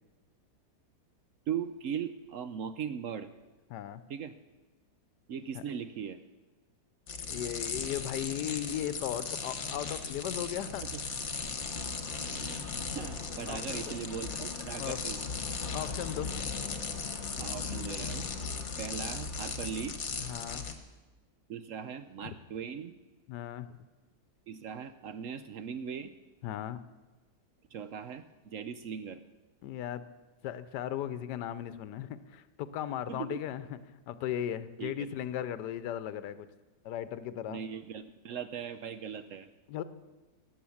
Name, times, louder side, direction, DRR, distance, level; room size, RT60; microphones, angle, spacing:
voice 1, 1.5-3.3 4.1-4.4 5.3-6.2 10.9-11.0 12.3-15.2 17.4-18.3 18.8-20.0 21.5-23.0 24.5-26.1 27.7-29.2 33.1-33.4 34.8-35.1 37.5-39.5, right 7 dB, 65° right, 11 dB, 0.8 m, -39 dB
voice 2, 3.7-4.0 5.5-5.6 7.3-10.8 13.5-14.0 14.8-15.4 15.7-16.3 20.2-20.6 22.2-22.3 23.3-23.8 26.4-26.8 29.6-30.0 30.4-33.8 34.1-36.5 36.8-37.6 39.7-39.8, left 11 dB, 80° left, 14 dB, 1.3 m, -37 dB
sound 1, 7.1-20.7, left 5 dB, 45° left, 1.4 m, -37 dB
18.0 x 8.5 x 7.1 m, 1.2 s
omnidirectional pair, 1.8 m